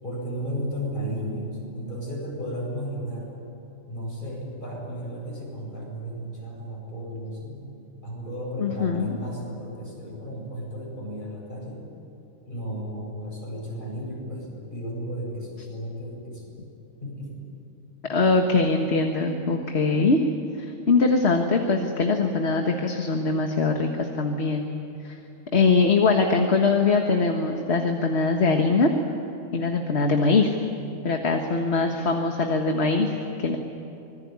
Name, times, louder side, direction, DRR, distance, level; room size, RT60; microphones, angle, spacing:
voice 1, 0.0-3.4 3.9-7.6 8.0-11.8 12.4-16.4 17.0-17.3, equal, 40° left, -3 dB, 8.2 m, -34 dB
voice 2, 8.6-9.2 18.1-20.2 20.6-24.7 25.0-25.2 25.5-28.9 29.5-30.5 31.0-33.6, left 4 dB, 55° left, 3 dB, 1.8 m, -22 dB
25.5 x 20.5 x 9.6 m, 2.9 s
omnidirectional pair, 1.4 m